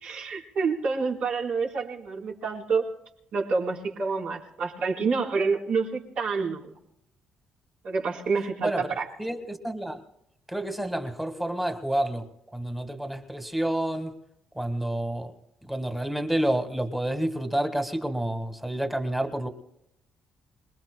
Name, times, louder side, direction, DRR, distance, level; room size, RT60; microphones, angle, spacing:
voice 1, 0.0-2.8 3.3-6.7 7.8-9.1, right 4 dB, 65° right, 4.1 m, -28 dB
voice 2, 8.6-10.0 10.5-12.3 12.5-14.1 14.5-15.3 15.6-19.5, right 1 dB, 5° right, 1.7 m, -29 dB
27.0 x 21.0 x 2.2 m
cardioid pair, 135°, 2 cm